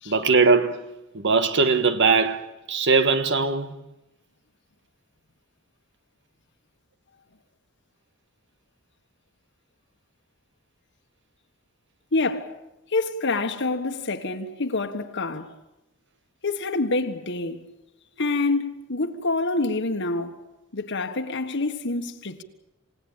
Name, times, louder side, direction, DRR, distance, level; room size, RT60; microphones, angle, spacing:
voice 1, 0.1-0.8 1.1-3.7, right 4 dB, 60° right, 1.5 m, -20 dB
voice 2, 12.1-12.5 12.9-15.5 16.4-17.6 18.2-20.4 20.7-22.4, left 3 dB, 60° left, 1.5 m, -27 dB
28.5 x 17.5 x 8.9 m
head